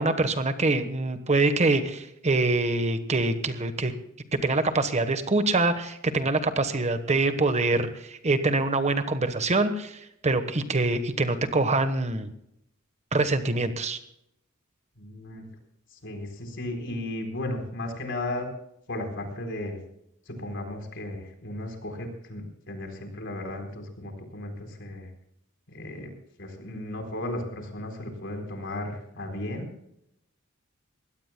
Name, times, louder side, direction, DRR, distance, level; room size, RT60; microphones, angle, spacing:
voice 1, 0.0-3.9 4.4-12.3 13.1-14.0, right 2 dB, 35° right, 10 dB, 1.2 m, -25 dB
voice 2, 15.0-15.4 15.9-18.5 18.9-19.8 20.3-25.1 25.7-26.1 26.4-29.7, left 1 dB, 60° left, 4 dB, 4.2 m, -35 dB
22.0 x 17.5 x 2.2 m, 0.79 s
head